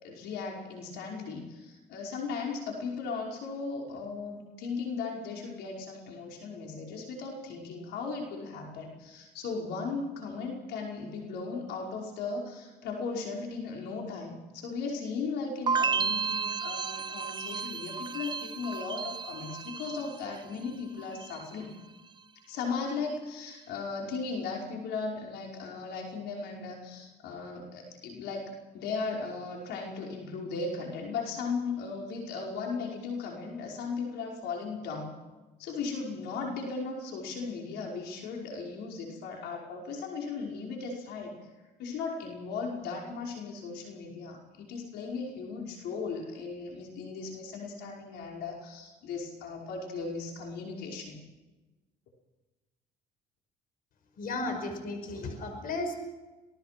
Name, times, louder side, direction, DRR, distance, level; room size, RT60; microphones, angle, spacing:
voice 1, 0.0-21.8 22.5-35.1 35.6-41.3 41.8-51.2, left 4 dB, 80° left, 0 dB, 5.3 m, -37 dB
sound 1, 15.7-20.7 21.0-21.6, right 5 dB, 25° right, 0.6 m, -33 dB
voice 2, 54.2-55.9, left 2 dB, 55° left, 6 dB, 5.4 m, -34 dB
26.5 x 19.0 x 6.0 m, 1.1 s
cardioid pair, 110°, 17 cm